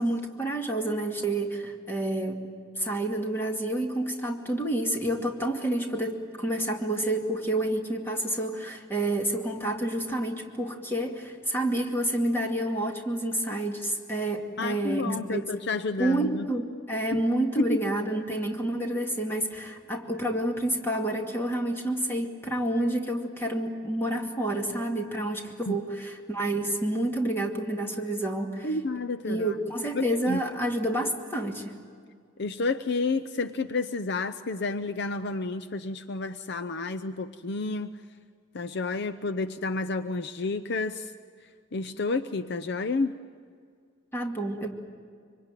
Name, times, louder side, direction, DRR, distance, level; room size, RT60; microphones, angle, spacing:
voice 1, 0.0-2.4 2.8-15.4 16.0-28.7 29.3-31.8 44.1-44.7, right 1 dB, 10° left, 1 dB, 2.3 m, -29 dB
voice 2, 14.6-16.5 17.1-17.2 17.6-17.8 25.7-25.8 28.6-29.5 29.9-30.4 32.4-38.0 38.5-41.1 41.7-43.1, left 3 dB, 55° left, 9 dB, 0.7 m, -30 dB
25.5 x 25.0 x 9.1 m, 2.1 s
head